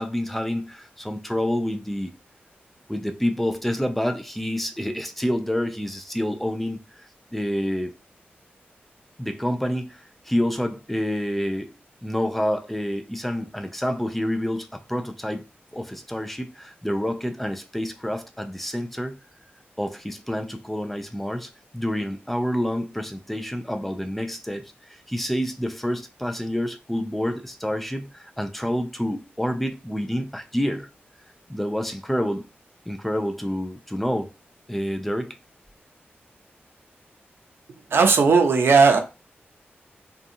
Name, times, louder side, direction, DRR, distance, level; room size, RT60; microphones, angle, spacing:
voice 1, 0.0-2.1 2.9-7.9 9.2-11.7 12.0-15.5 15.7-19.2 19.8-30.9 31.5-32.5 32.9-34.3 34.7-35.4, equal, 5° left, 0.4 m, -28 dB
voice 2, 37.9-39.0, right 4 dB, 70° right, 0.5 m, -16 dB
2.7 x 2.3 x 2.6 m
wide cardioid pair, 125°, 4 cm